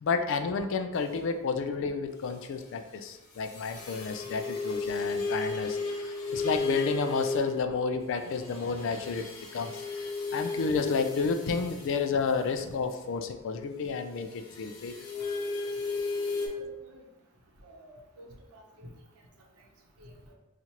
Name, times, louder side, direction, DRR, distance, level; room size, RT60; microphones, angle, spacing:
voice 1, 0.0-9.3 9.5-9.8 10.3-14.9, left 5 dB, 60° left, 8 dB, 0.3 m, -31 dB
sound 1, 3.5-7.7 8.3-12.0 14.5-16.5, left 3 dB, 90° left, 0.8 m, -34 dB
voice 2, 16.6-17.0 17.6-18.9 20.0-20.3, equal, 80° right, 0 dB, 0.7 m, -50 dB
4.4 x 2.5 x 2.8 m, 0.97 s
head